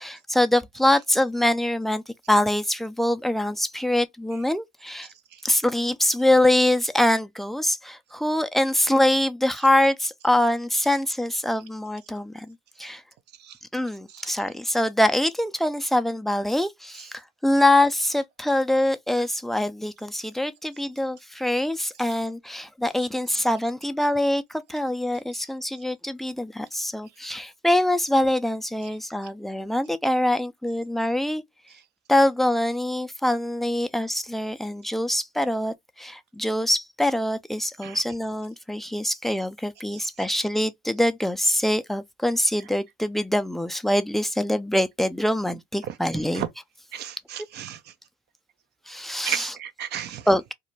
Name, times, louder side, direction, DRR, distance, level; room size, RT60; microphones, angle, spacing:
voice 1, 0.0-2.0 2.3-5.1 5.4-13.0 13.7-31.4 32.1-46.4 48.9-49.6 50.3-50.5, left 1 dB, ahead, 0.4 m, -24 dB
voice 2, 46.9-47.8 49.2-50.2, right 10 dB, 55° right, 0.6 m, -32 dB
2.4 x 2.1 x 3.0 m
hypercardioid pair, 75°, 21 cm